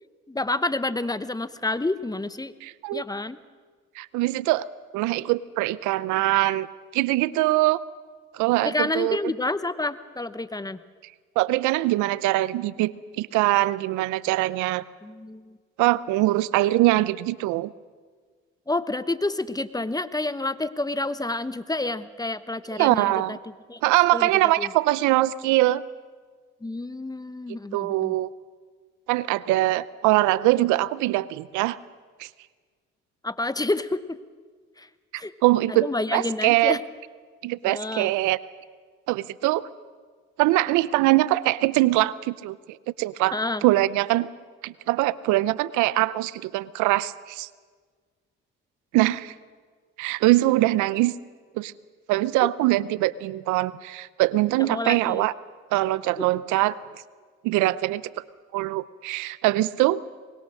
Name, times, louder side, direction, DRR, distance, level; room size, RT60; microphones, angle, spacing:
voice 1, 0.3-2.5 2.9-3.4 8.6-10.8 15.0-15.6 18.7-23.4 23.7-23.8 24.1-24.3 24.6-24.7 26.6-28.1 33.2-34.2 34.8-34.9 35.1-35.3 35.7-36.8 37.6-38.1 43.3-43.6 52.4-52.5 54.6-55.3 56.2-56.3, left 2 dB, 15° left, 14 dB, 1.0 m, -29 dB
voice 2, 2.6-3.0 4.0-4.7 4.9-6.7 6.9-7.8 8.3-9.2 11.4-14.8 15.8-17.7 22.8-23.4 23.8-25.8 27.7-28.3 29.1-31.8 32.2-32.3 35.4-36.8 37.4-38.4 39.1-39.7 40.4-42.6 43.0-44.3 44.6-47.5 48.9-49.3 50.0-51.1 51.6-51.7 52.1-55.3 55.7-56.8 57.4-58.0 58.5-60.0, right 17 dB, 80° right, 19 dB, 0.7 m, -22 dB
24.0 x 21.0 x 6.4 m, 1.5 s
supercardioid pair, 70°, 30 cm